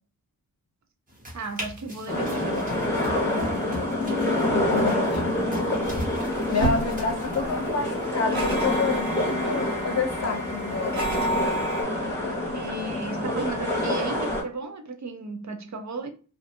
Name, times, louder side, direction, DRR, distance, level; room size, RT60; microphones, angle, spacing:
sound 1, 1.1-7.7, equal, 20° right, 1.0 m, -40 dB
voice 1, 1.3-2.8 12.5-16.1, right 3 dB, 50° right, 0.4 m, -34 dB
sound 2, 2.1-14.4, left 1 dB, 5° left, 0.8 m, -27 dB
voice 2, 4.5-6.2 6.5-11.1, left 5 dB, 45° left, 0.5 m, -29 dB
sound 3, 5.8-11.8, right 1 dB, 70° right, 0.9 m, -31 dB
2.5 x 2.3 x 2.5 m
wide cardioid pair, 155°, 36 cm